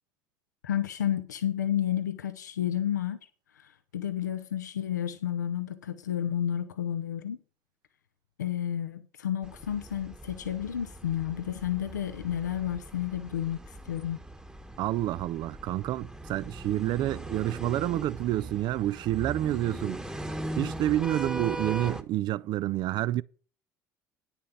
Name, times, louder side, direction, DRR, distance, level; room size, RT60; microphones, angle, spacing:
voice 1, 0.6-3.2 3.5-7.4 8.4-14.2, left 10 dB, 85° left, 0.6 m, -31 dB
sound 1, 9.4-22.0, right 1 dB, 10° right, 1.2 m, -40 dB
voice 2, 14.8-20.0 20.6-23.2, right 14 dB, 55° right, 0.4 m, -29 dB
9.8 x 7.0 x 5.7 m
hypercardioid pair, 65°, 9 cm